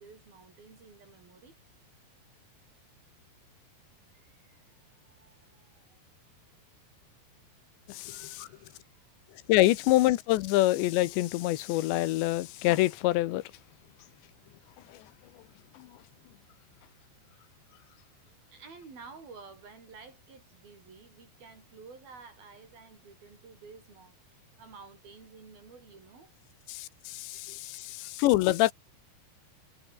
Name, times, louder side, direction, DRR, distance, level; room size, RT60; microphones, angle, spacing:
voice 1, 0.0-1.6 4.1-6.0 8.0-9.1 18.5-26.6 27.5-28.1, right 4 dB, 55° right, 7.8 m, -52 dB
voice 2, 7.9-8.5 9.5-13.4 14.9-15.0 15.8-15.9 26.7-28.7, left 16 dB, 85° left, 3.2 m, -26 dB
omnidirectional pair, 5.0 m